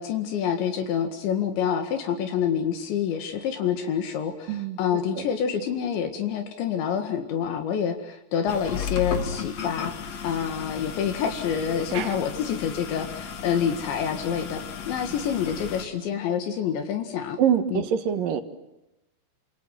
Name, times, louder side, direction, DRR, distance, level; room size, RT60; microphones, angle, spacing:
voice 1, 0.0-17.4 17.7-17.8, left 8 dB, 75° left, 6 dB, 4.2 m, -27 dB
voice 2, 4.5-4.8 5.2-5.3 11.9-12.1 17.4-18.4, right 8 dB, 60° right, 9 dB, 2.7 m, -24 dB
sound 1, 8.5-15.8, left 7 dB, 50° left, 2.4 m, -34 dB
28.5 x 27.0 x 7.7 m, 0.91 s
omnidirectional pair, 5.3 m